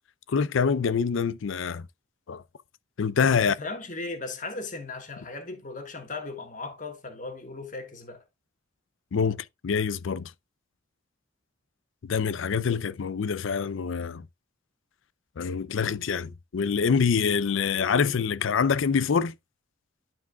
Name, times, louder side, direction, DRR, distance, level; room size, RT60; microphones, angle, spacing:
voice 1, 0.3-1.8 2.3-2.4 3.0-3.6 9.1-10.3 12.0-14.2 15.4-19.3, left 6 dB, 70° left, 0.4 m, -25 dB
voice 2, 3.3-8.2, left 3 dB, 40° left, 1.5 m, -37 dB
12.0 x 4.7 x 2.2 m
head